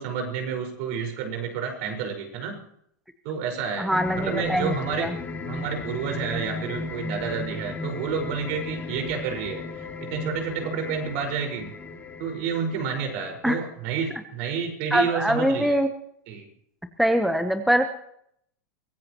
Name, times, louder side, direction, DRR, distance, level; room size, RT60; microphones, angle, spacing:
voice 1, 0.0-2.6 3.2-5.1 5.4-11.7 12.2-15.7 16.3-16.5, right 6 dB, 55° right, 4 dB, 5.2 m, -30 dB
voice 2, 3.8-4.7 5.0-5.1 13.4-13.6 14.9-15.9 17.0-17.9, equal, ahead, 7 dB, 0.9 m, -23 dB
sound 1, 3.9-13.7, left 3 dB, 20° left, 2.5 m, -35 dB
24.0 x 16.0 x 3.0 m, 0.70 s
supercardioid pair, 135°, 9 cm